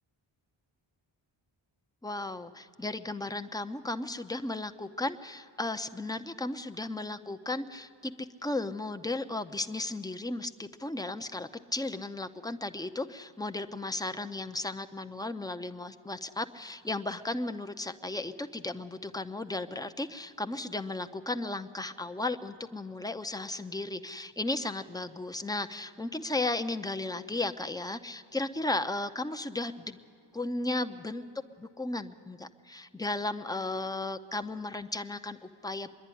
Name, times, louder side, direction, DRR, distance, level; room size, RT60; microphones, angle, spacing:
voice 1, 2.0-30.0 30.3-31.2 31.6-35.9, left 2 dB, 10° left, 8 dB, 0.8 m, -35 dB
24.5 x 11.0 x 10.0 m, 2.4 s
cardioid pair, 60°, 50 cm